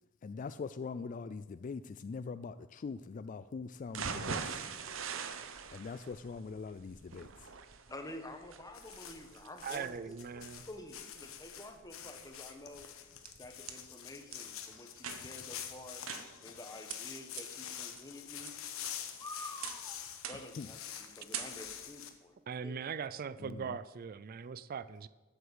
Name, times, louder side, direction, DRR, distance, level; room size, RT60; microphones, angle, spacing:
voice 1, 0.2-4.4 5.7-7.3 20.6-20.7 23.5-23.6, left 4 dB, 40° left, 14 dB, 0.3 m, -42 dB
sound 1, 3.9-11.9 12.3-12.4 12.7-12.8, right 5 dB, 70° right, 0.9 m, -43 dB
voice 2, 7.9-12.9 13.4-16.1 16.4-18.5 19.2-20.0 20.3-22.4 22.6-22.8, left 1 dB, 15° left, 6 dB, 1.2 m, -49 dB
sound 2, 8.7-22.1, left 9 dB, 80° left, 1.3 m, -46 dB
voice 3, 9.6-10.6 22.5-25.1, right 6 dB, 45° right, 15 dB, 0.4 m, -40 dB
sound 3, 12.8-13.8 14.3-14.4 15.0-15.5 16.1-16.6 16.9-17.0 17.4-17.5 18.0-18.5 18.8-19.2 19.6-19.9 20.2-20.6 20.9-21.1 21.3-21.9, right 8 dB, 85° right, 1.3 m, -44 dB
13.0 x 8.0 x 8.0 m, 1.3 s
head